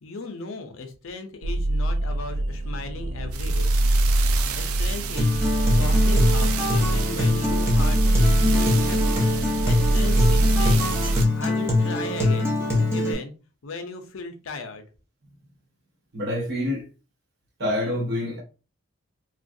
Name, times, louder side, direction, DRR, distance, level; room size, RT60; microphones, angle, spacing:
voice 1, 0.0-3.7 4.5-5.4 5.7-8.0 8.5-9.3 9.6-11.0 11.4-12.6 12.9-13.3 13.6-14.9, left 3 dB, 70° left, 0.6 m, -37 dB
sound 1, 1.4-11.2, right 2 dB, 85° right, 0.4 m, -23 dB
Acoustic guitar, 5.1-13.1, left 2 dB, 10° right, 0.6 m, -23 dB
voice 2, 16.1-16.9 17.6-18.4, left 1 dB, 50° right, 0.9 m, -26 dB
3.0 x 2.4 x 2.6 m
head